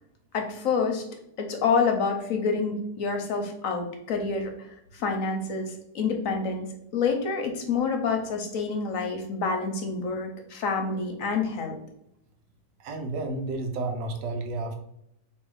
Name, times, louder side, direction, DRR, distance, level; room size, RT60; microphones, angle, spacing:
voice 1, 0.3-1.0 1.4-6.7 6.9-11.8, left 5 dB, 60° left, 3 dB, 0.9 m, -28 dB
voice 2, 12.8-14.8, right 2 dB, 85° right, 4 dB, 1.4 m, -31 dB
3.3 x 3.0 x 4.7 m, 0.77 s
omnidirectional pair, 1.9 m